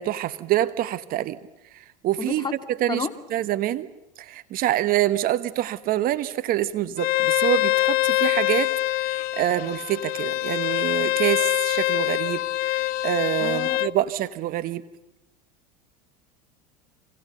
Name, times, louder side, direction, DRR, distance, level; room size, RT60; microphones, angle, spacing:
voice 1, 0.0-1.4 2.0-2.4 2.8-3.9 4.2-14.8, right 13 dB, 50° right, 13 dB, 1.2 m, -26 dB
voice 2, 2.2-2.5 2.9-3.1 13.4-13.8, left 4 dB, 20° left, 6 dB, 2.3 m, -30 dB
Bowed string instrument, 7.0-13.9, left 17 dB, 50° left, 0.8 m, -24 dB
26.0 x 24.5 x 6.7 m, 0.91 s
hypercardioid pair, 85°, 19 cm